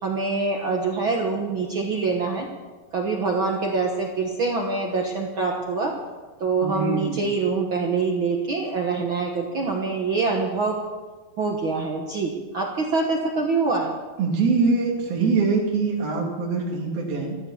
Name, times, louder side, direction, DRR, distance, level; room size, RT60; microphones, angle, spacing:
voice 1, 0.0-2.5 2.9-6.0 6.4-10.8 11.4-13.9, right 4 dB, 60° right, 1 dB, 1.3 m, -25 dB
voice 2, 6.6-7.3 14.2-17.4, right 4 dB, 80° right, -3 dB, 4.3 m, -23 dB
14.5 x 13.0 x 7.2 m, 1.3 s
omnidirectional pair, 4.2 m